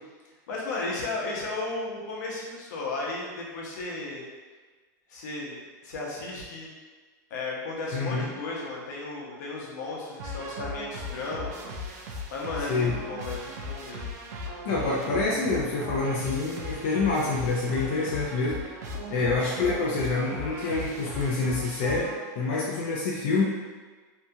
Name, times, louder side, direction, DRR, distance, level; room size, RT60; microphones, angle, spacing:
voice 1, 0.5-4.2 5.1-5.6 5.8-6.7 7.3-14.1 19.0-19.2, left 2 dB, 70° left, -3 dB, 0.7 m, -35 dB
voice 2, 7.9-8.3 12.7-12.9 14.6-18.6 19.1-23.4, left 3 dB, 35° left, -5 dB, 0.3 m, -27 dB
sound 1, 10.2-22.6, left 1 dB, 65° right, 0.4 m, -37 dB
2.7 x 2.3 x 2.7 m, 1.4 s
supercardioid pair, 180°, 10 cm